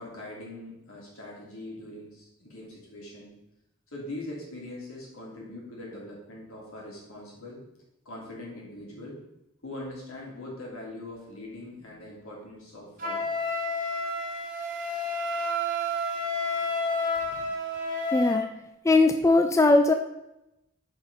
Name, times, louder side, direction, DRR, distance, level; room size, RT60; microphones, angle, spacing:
voice 1, 0.0-3.3 3.9-7.6 8.0-9.2 9.6-13.3, left 1 dB, 80° left, -4 dB, 2.9 m, -42 dB
Wind instrument woodwind instrument, 13.0-18.4, left 1 dB, 40° right, 1.3 m, -30 dB
voice 2, 18.1-18.5 18.8-19.9, left 2 dB, 15° left, 6 dB, 0.3 m, -20 dB
6.1 x 5.2 x 5.3 m, 0.88 s
head